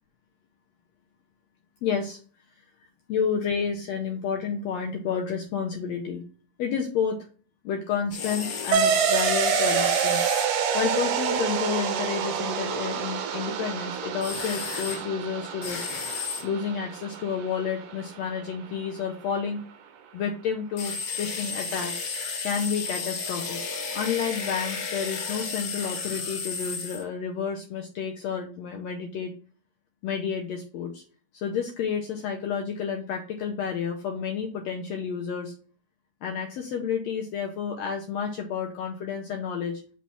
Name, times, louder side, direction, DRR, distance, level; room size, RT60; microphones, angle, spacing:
voice 1, 1.8-2.2 3.1-6.2 6.6-7.2 7.6-10.2 10.7-15.8 16.4-19.6 20.1-22.1 22.4-23.6 23.9-29.3 30.0-31.0 31.3-35.5 36.2-39.8, left 7 dB, 80° left, 2 dB, 1.5 m, -30 dB
sound 1, 8.1-10.5 14.2-15.0 15.6-16.4 20.8-27.0, left 5 dB, 60° left, 1.7 m, -33 dB
sound 2, 8.7-17.7, right 7 dB, 80° right, 2.3 m, -27 dB
5.7 x 3.1 x 5.5 m, 0.40 s
omnidirectional pair, 3.7 m